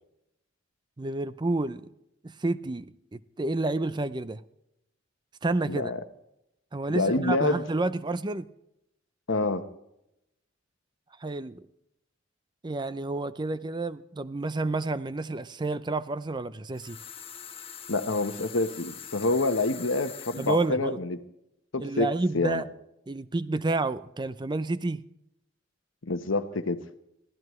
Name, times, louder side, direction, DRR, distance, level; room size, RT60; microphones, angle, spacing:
voice 1, 1.0-1.9 2.2-4.4 5.4-5.9 6.7-8.5 11.2-11.6 12.6-17.0 20.4-21.0 21.8-22.7 23.1-25.0, right 2 dB, 20° right, 0.5 m, -30 dB
voice 2, 5.7-6.0 6.9-7.6 9.3-9.7 17.9-21.2 21.7-22.6 26.0-26.9, left 2 dB, 75° left, 1.1 m, -27 dB
sound 1, 16.7-20.7, left 8 dB, 30° left, 1.2 m, -43 dB
23.0 x 16.0 x 3.2 m
head